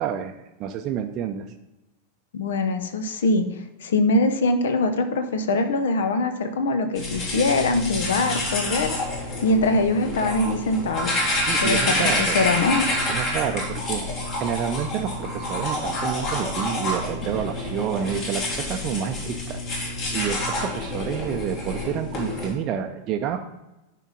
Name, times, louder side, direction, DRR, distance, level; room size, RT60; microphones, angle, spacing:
voice 1, 0.0-1.4 11.4-12.4 13.1-14.0 14.4-23.4, right 8 dB, 35° right, 5 dB, 0.6 m, -29 dB
voice 2, 2.3-3.5 3.8-8.9 9.4-11.1 11.6-12.9, left 2 dB, 60° left, 8 dB, 0.9 m, -23 dB
sound 1, 7.0-22.5, left 1 dB, 35° left, 2.0 m, -28 dB
11.0 x 4.6 x 3.9 m, 0.99 s
figure-of-eight pair, 90°, 0 cm